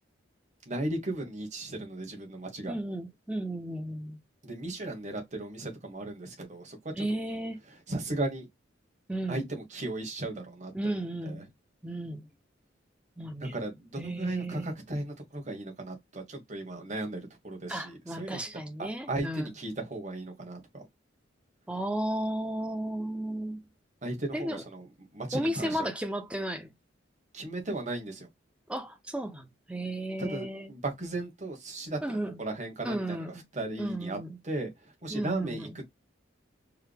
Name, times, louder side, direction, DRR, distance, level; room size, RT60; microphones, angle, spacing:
voice 1, 0.7-2.8 4.4-7.0 7.9-8.5 9.3-10.7 11.2-11.4 13.4-18.4 18.8-20.8 24.0-24.8 25.1-25.9 27.3-28.3 30.2-32.0 32.4-34.2 34.4-34.7 35.0-35.8, right 2 dB, 35° right, 1.3 m, -36 dB
voice 2, 2.7-4.2 7.0-7.6 9.1-9.4 10.7-11.5 11.8-12.3 13.2-13.6 14.0-14.7 17.7-19.5 21.7-23.6 24.3-24.6 25.3-26.7 28.7-30.7 32.0-32.4 32.8-33.4 33.8-34.4 35.1-35.8, right 1 dB, 5° right, 0.5 m, -34 dB
4.7 x 2.1 x 3.4 m
head